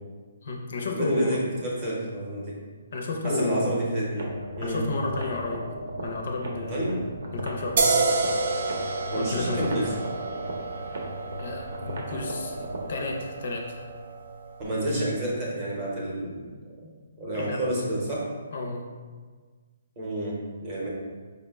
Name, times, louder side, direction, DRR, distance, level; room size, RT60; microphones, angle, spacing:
voice 1, 0.4-1.4 2.9-3.7 4.6-5.7 6.0-6.8 7.3-8.0 9.1-9.9 11.4-12.6 12.9-13.9 17.3-17.6 18.5-18.9, left 3 dB, 45° left, 1 dB, 0.5 m, -32 dB
voice 2, 0.9-2.6 3.2-4.3 4.6-4.8 6.7-7.1 9.1-9.9 14.6-16.5 17.2-18.3 20.0-20.9, right 1 dB, 20° right, -4 dB, 0.7 m, -29 dB
sound 1, 4.1-13.1, equal, 65° right, 0.7 m, -37 dB
sound 2, 7.8-15.1, right 3 dB, 45° right, 0.3 m, -30 dB
5.1 x 2.1 x 3.4 m, 1.5 s
hypercardioid pair, 175°, 0 cm